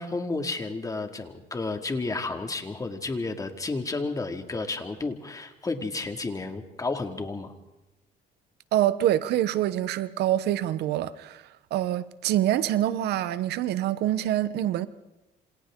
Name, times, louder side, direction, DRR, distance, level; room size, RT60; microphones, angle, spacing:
voice 1, 0.0-7.5, left 3 dB, 20° left, 2.3 m, -32 dB
voice 2, 8.7-14.9, right 12 dB, 75° right, 1.0 m, -26 dB
27.5 x 26.5 x 3.8 m
cardioid pair, 110°, 17 cm